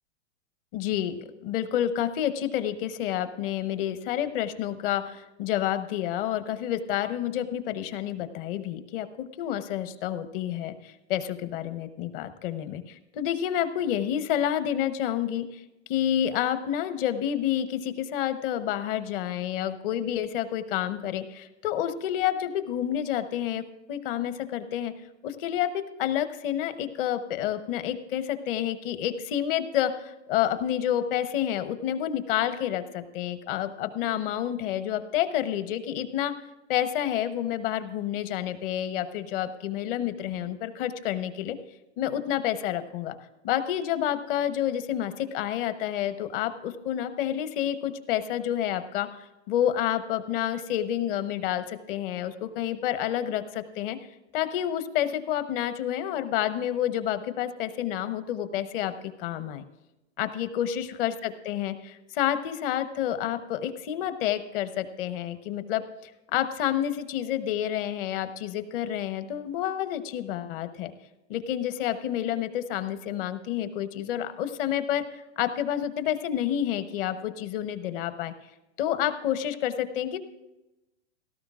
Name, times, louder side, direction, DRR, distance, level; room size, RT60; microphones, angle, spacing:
voice 1, 0.7-15.6 15.9-24.9 25.2-36.3 36.7-41.6 42.0-43.1 43.4-49.1 49.5-54.0 54.3-58.9 59.2-59.6 60.2-65.8 66.3-70.9 71.3-78.3 78.8-80.2, left 11 dB, 50° left, 11 dB, 1.1 m, -29 dB
17.0 x 13.5 x 2.5 m, 0.99 s
hypercardioid pair, 120°, 35 cm